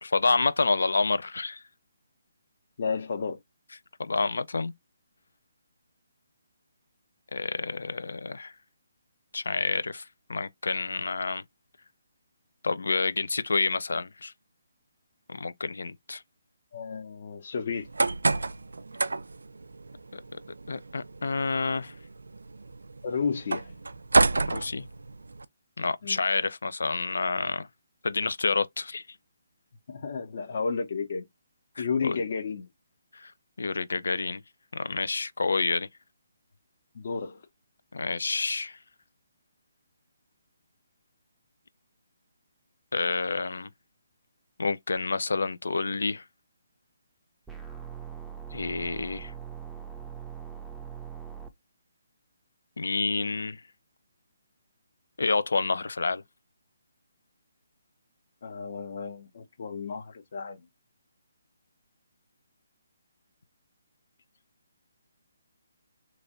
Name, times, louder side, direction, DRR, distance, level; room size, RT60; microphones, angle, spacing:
voice 1, 0.0-1.6 4.0-4.7 7.3-8.5 9.3-11.4 12.6-14.3 15.3-16.2 20.1-20.4 20.7-21.9 24.5-24.8 25.8-27.7 28.0-29.0 31.8-32.2 33.1-33.3 33.6-34.4 34.7-35.9 37.9-38.8 42.9-43.7 44.6-46.2 48.5-49.3 52.8-53.6 55.2-56.2, left 4 dB, 75° left, 0.5 m, -28 dB
voice 2, 2.8-3.4 16.7-17.9 23.0-23.7 26.0-26.3 29.9-31.3 31.8-32.7 36.9-37.4 58.4-60.6, left 5 dB, 55° left, 0.8 m, -32 dB
sound 1, 17.7-25.4, right 3 dB, 85° right, 0.4 m, -30 dB
sound 2, 47.5-51.5, right 8 dB, 5° right, 0.5 m, -41 dB
3.2 x 2.3 x 3.9 m
hypercardioid pair, 150°, 0 cm